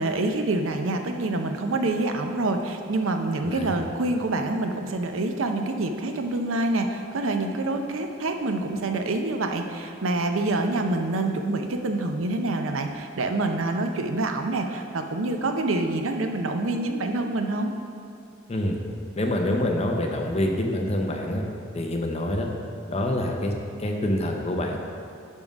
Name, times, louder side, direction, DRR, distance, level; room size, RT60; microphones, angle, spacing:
voice 1, 0.0-17.7, right 2 dB, 75° right, 5 dB, 0.6 m, -26 dB
voice 2, 3.4-3.8 18.5-18.8 19.2-21.4 21.7-22.5 22.9-23.5 23.8-24.8, left 1 dB, 30° left, 2 dB, 0.7 m, -26 dB
10.5 x 3.7 x 5.3 m, 2.5 s
head